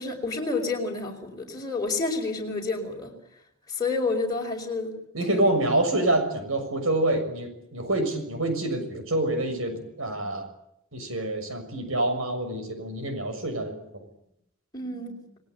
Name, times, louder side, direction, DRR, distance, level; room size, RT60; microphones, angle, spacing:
voice 1, 0.0-3.1 3.7-5.0 5.3-5.5 10.2-10.3 14.7-15.2, left 3 dB, 20° left, -1 dB, 5.2 m, -29 dB
voice 2, 5.1-10.4 10.9-13.7, right 1 dB, 75° right, 7 dB, 6.6 m, -26 dB
29.5 x 20.5 x 8.5 m, 0.79 s
head